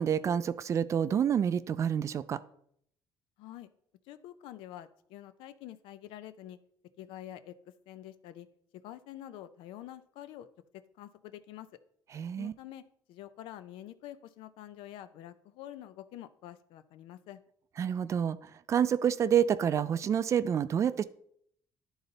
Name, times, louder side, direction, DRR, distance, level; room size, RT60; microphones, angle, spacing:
voice 1, 0.0-2.4 12.1-12.5 17.8-21.0, right 8 dB, 35° right, 14 dB, 0.4 m, -28 dB
voice 2, 3.4-3.7 4.1-6.6 7.0-7.5 7.9-8.5 8.8-10.5 11.0-11.7 12.4-12.8 13.1-17.4, left 12 dB, 85° left, 12 dB, 0.5 m, -47 dB
11.5 x 4.0 x 3.9 m, 0.67 s
cardioid pair, 135°, 9 cm